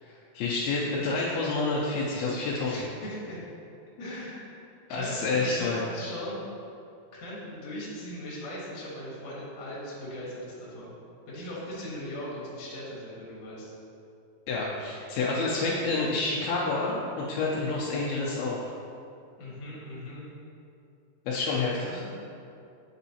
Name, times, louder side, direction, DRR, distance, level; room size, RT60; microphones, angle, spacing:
voice 1, 0.0-2.9 4.9-5.8 14.5-18.7 21.3-22.0, left 3 dB, 80° left, -5 dB, 2.4 m, -29 dB
voice 2, 2.7-3.4 4.0-4.5 4.9-6.5 7.1-10.9 11.3-13.7 19.4-20.3 21.7-22.2, equal, 55° left, -7 dB, 2.1 m, -39 dB
7.0 x 5.2 x 2.7 m, 2.6 s
omnidirectional pair, 4.5 m